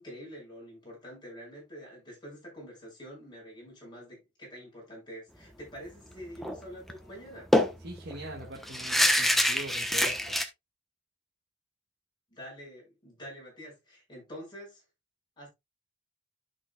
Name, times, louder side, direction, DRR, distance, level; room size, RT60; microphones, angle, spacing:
voice 1, 0.0-7.5 12.3-14.8 15.4-15.5, equal, 25° left, 5.9 m, -46 dB
sound 1, 6.4-6.6 6.9-7.0 7.5-10.5, equal, ahead, 1.0 m, -26 dB
voice 2, 7.8-10.4, right 1 dB, 60° right, 1.9 m, -42 dB
12.0 x 6.2 x 2.3 m
head